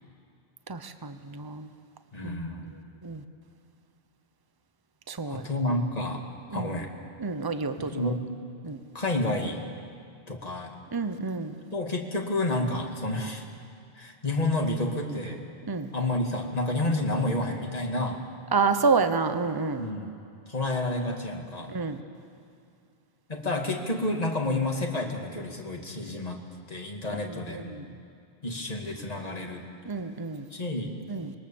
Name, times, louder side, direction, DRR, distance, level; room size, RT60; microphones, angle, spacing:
voice 1, 0.7-1.7 2.2-2.4 3.0-3.2 5.1-5.5 6.5-6.7 7.2-8.1 8.6-8.8 10.9-11.5 15.7-15.9 18.5-19.8 21.7-22.0 27.1-27.9 29.9-30.4 31.1-31.3, right 4 dB, 20° right, 9 dB, 0.9 m, -29 dB
voice 2, 2.1-2.7 5.3-6.9 7.8-8.3 8.9-9.6 10.3-10.8 11.7-13.5 14.0-15.4 15.9-18.2 19.7-20.1 20.5-21.7 23.3-26.4 26.7-27.8 28.4-29.6 30.5-30.9, left 2 dB, 35° left, 1 dB, 2.4 m, -30 dB
26.5 x 21.5 x 7.2 m, 2.5 s
omnidirectional pair, 1.1 m